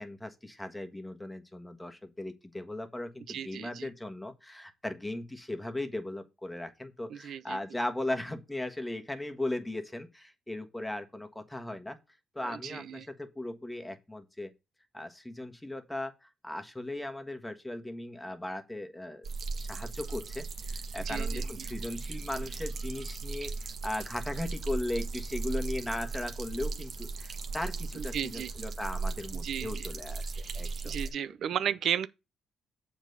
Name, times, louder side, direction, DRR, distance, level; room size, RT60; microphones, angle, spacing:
voice 1, 0.0-12.0 12.3-14.5 14.9-19.3 19.6-31.1, left 1 dB, 10° left, 1.5 m, -38 dB
voice 2, 3.3-3.9 7.1-7.6 12.4-13.1 21.0-21.4 28.0-28.5 29.4-29.9 30.8-32.1, right 9 dB, 70° right, 0.5 m, -34 dB
sound 1, 19.2-31.1, right 4 dB, 55° right, 1.4 m, -37 dB
7.3 x 4.1 x 6.7 m
cardioid pair, 90°, 0 cm